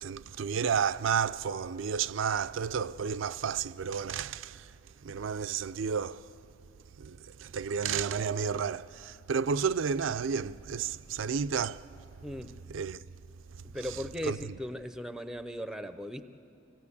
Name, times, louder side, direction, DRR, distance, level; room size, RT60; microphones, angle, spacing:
voice 1, 0.0-4.7 5.0-6.3 7.0-12.0 12.7-13.0 14.3-14.5, right 6 dB, 85° right, 0.4 m, -31 dB
voice 2, 12.2-12.5 13.6-16.2, equal, 5° right, 0.6 m, -38 dB
25.0 x 17.0 x 8.5 m
head